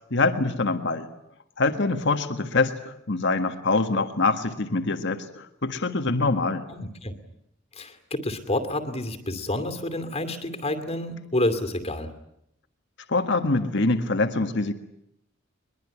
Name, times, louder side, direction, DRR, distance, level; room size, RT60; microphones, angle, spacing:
voice 1, 0.1-1.1 1.6-6.7 13.1-14.7, left 3 dB, 60° left, 7 dB, 1.7 m, -24 dB
voice 2, 6.7-7.1 7.8-12.1, left 1 dB, 30° left, 7 dB, 2.5 m, -29 dB
22.5 x 22.0 x 9.9 m, 0.80 s
head